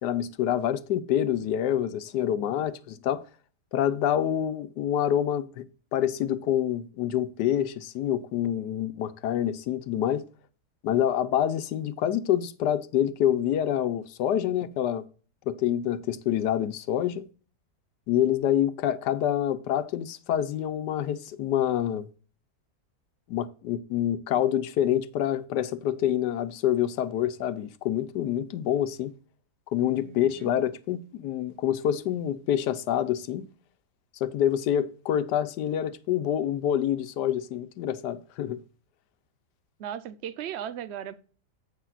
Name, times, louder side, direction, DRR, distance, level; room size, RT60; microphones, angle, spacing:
voice 1, 0.0-3.2 3.7-5.7 5.9-10.2 10.8-15.0 15.5-17.3 18.1-22.1 23.3-29.1 29.7-33.5 34.1-38.6, left 10 dB, 85° left, 1.3 m, -27 dB
voice 2, 30.0-30.5 39.8-41.2, right 9 dB, 65° right, 0.7 m, -37 dB
10.0 x 8.2 x 2.4 m
omnidirectional pair, 1.8 m